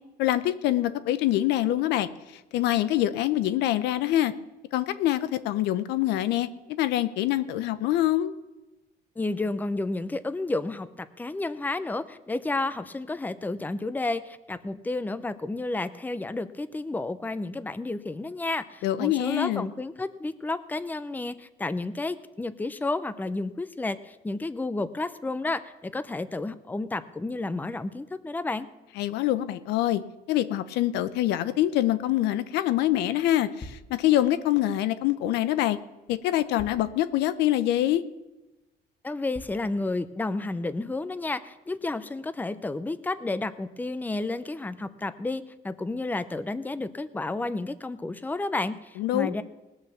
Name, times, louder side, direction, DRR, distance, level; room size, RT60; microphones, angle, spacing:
voice 1, 0.2-2.1 2.5-4.3 4.7-6.5 6.8-8.3 18.8-19.7 29.0-30.0 30.3-35.8 36.1-38.0 49.0-49.4, left 13 dB, 85° left, 13 dB, 0.8 m, -25 dB
voice 2, 9.2-28.7 39.0-49.4, left 2 dB, 10° left, 13 dB, 0.7 m, -31 dB
sound 1, 33.6-33.9 35.5-35.6 36.6-36.9 37.5-37.6 38.2-38.3 39.3-39.7, left 2 dB, 25° left, 1.5 m, -44 dB
19.0 x 6.4 x 7.1 m, 1.0 s
cardioid pair, 110°, 17 cm